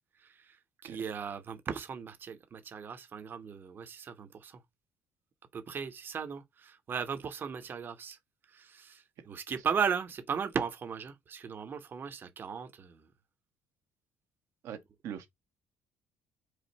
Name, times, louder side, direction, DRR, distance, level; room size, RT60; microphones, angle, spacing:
voice 1, 0.2-4.6 5.5-8.2 8.5-13.1, right 6 dB, 40° right, 1.0 m, -37 dB
voice 2, 14.6-15.3, right 9 dB, 65° right, 1.2 m, -42 dB
4.9 x 2.5 x 4.1 m
cardioid pair, 115°, 5 cm